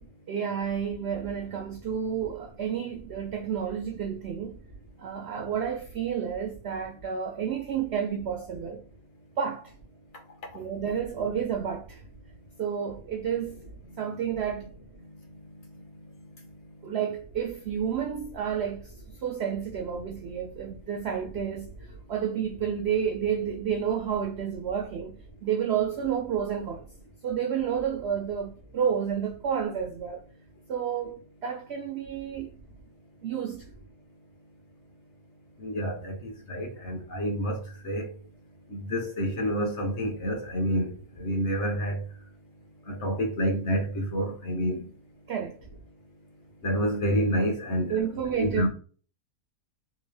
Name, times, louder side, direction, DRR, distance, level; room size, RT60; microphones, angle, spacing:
voice 1, 0.3-4.6 5.0-8.8 9.4-9.7 10.5-12.0 12.6-13.6 14.0-14.7 16.8-18.9 19.2-21.7 22.1-26.8 27.2-30.2 30.7-32.5 33.2-33.7 45.3-45.6 47.9-48.7, right 8 dB, 80° right, 0.6 m, -30 dB
voice 2, 35.6-38.1 38.7-42.0 42.9-44.8 46.6-48.0 48.3-48.7, equal, 50° left, 1.1 m, -28 dB
3.6 x 2.6 x 3.3 m
omnidirectional pair, 1.7 m